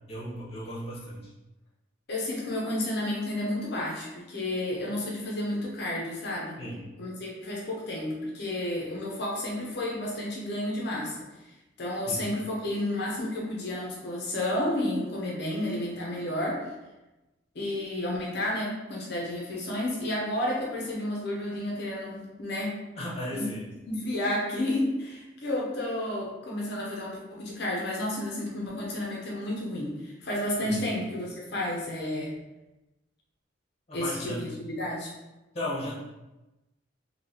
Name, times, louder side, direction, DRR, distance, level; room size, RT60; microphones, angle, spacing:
voice 1, 0.1-1.3 6.6-6.9 12.1-12.2 23.0-23.6 30.6-30.8 33.9-34.4 35.5-36.0, left 1 dB, 30° left, -6 dB, 0.9 m, -35 dB
voice 2, 2.1-6.6 7.0-11.2 11.8-16.7 17.5-22.7 23.3-23.5 23.8-32.4 33.9-35.1, left 1 dB, 55° left, -3 dB, 0.6 m, -31 dB
3.2 x 2.8 x 2.7 m, 1.0 s
head